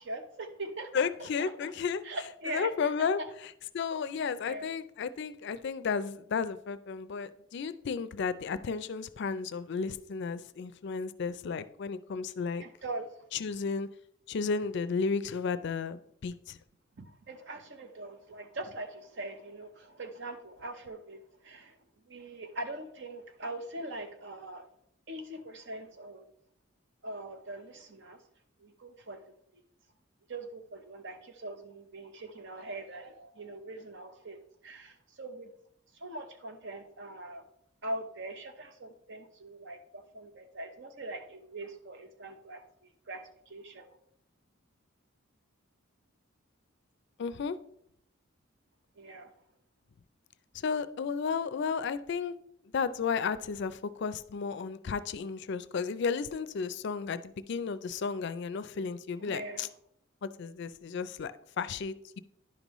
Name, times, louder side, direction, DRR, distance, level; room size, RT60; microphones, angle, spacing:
voice 1, 0.0-1.7 2.0-3.3 4.4-4.7 12.6-13.1 17.0-21.7 22.1-24.7 25.1-26.3 27.0-28.2 28.6-29.2 30.3-34.4 34.6-35.5 36.0-37.4 37.8-42.6 43.1-43.9 49.0-49.3 59.2-59.7, right 2 dB, 60° right, 8 dB, 0.8 m, -42 dB
voice 2, 0.9-2.0 2.5-12.6 13.3-13.9 14.3-16.6 47.2-47.6 50.5-52.4 52.7-59.7 60.2-62.2, left 5 dB, 60° left, 14 dB, 0.4 m, -33 dB
10.5 x 5.3 x 3.0 m, 0.74 s
head